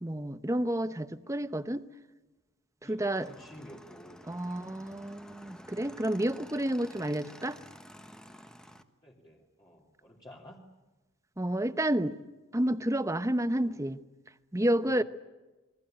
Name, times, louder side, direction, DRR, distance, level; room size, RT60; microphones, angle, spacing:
voice 1, 0.0-1.9 2.8-3.3 4.3-7.6 11.4-12.2 12.5-14.0 14.5-15.0, right 1 dB, 15° right, 12 dB, 1.0 m, -30 dB
voice 2, 2.8-4.8 9.0-10.6 13.6-13.9 14.9-15.0, equal, 20° left, -2 dB, 2.7 m, -52 dB
Motorcycle / Engine, 3.0-8.8, equal, 5° left, 1.4 m, -51 dB
29.0 x 22.5 x 8.8 m, 1.1 s
head